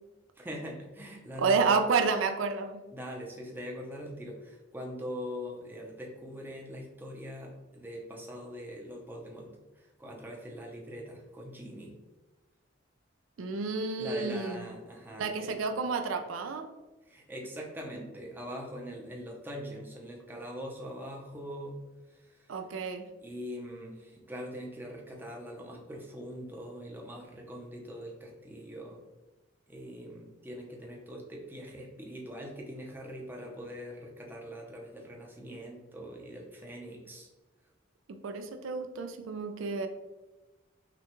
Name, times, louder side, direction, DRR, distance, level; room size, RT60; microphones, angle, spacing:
voice 1, 0.4-1.8 2.9-11.9 14.0-15.6 17.0-21.8 22.1-22.5 23.2-29.0 29.7-37.3, equal, 10° right, -1 dB, 0.6 m, -42 dB
voice 2, 1.4-2.8 13.4-14.7 15.2-16.7 22.5-23.0 38.1-39.9, right 4 dB, 85° right, 6 dB, 0.4 m, -30 dB
5.9 x 2.3 x 3.0 m, 1.1 s
head